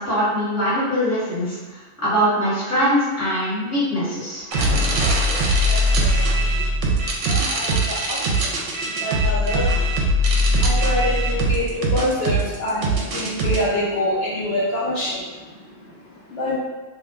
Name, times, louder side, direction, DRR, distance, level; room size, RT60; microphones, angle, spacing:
voice 1, 0.0-4.4, equal, 15° left, -10 dB, 1.2 m, -22 dB
sound 1, 4.5-13.6, right 1 dB, 80° right, 0.9 m, -20 dB
voice 2, 5.5-6.6 7.2-9.9 10.5-16.6, left 1 dB, 60° left, -9 dB, 0.8 m, -27 dB
3.0 x 2.2 x 3.5 m, 1.3 s
omnidirectional pair, 1.3 m